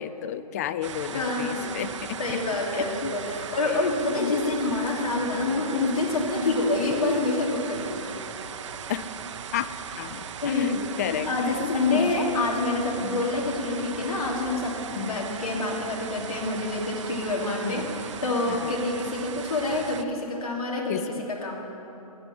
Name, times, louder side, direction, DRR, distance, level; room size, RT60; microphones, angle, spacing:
voice 1, 0.0-2.4 3.0-3.1 3.7-3.9 4.2-4.3 6.4-6.6 8.9-9.1 9.5-9.7 10.0-11.6 11.9-12.1 13.0-13.3 14.9-15.2 17.6-17.9 18.5-18.7 20.9-21.0, left 10 dB, 25° left, 13 dB, 0.4 m, -32 dB
sound 1, 0.8-20.0, right 7 dB, 50° right, 0.7 m, -38 dB
voice 2, 1.1-1.8 2.2-8.1 10.4-10.8 11.3-21.6, left 2 dB, 70° left, -2 dB, 2.8 m, -27 dB
11.0 x 8.5 x 9.0 m, 2.9 s
hypercardioid pair, 145°, 19 cm